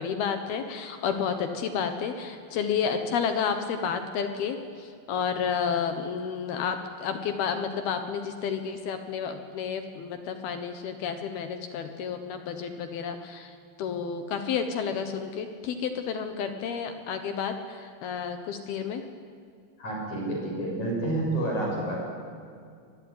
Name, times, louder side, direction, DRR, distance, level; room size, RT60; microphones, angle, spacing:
voice 1, 0.0-13.5 13.8-19.0, left 6 dB, 65° left, 7 dB, 2.8 m, -31 dB
voice 2, 19.8-22.0, right 1 dB, 40° left, -1 dB, 7.4 m, -29 dB
24.5 x 19.5 x 9.6 m, 2.2 s
omnidirectional pair, 5.4 m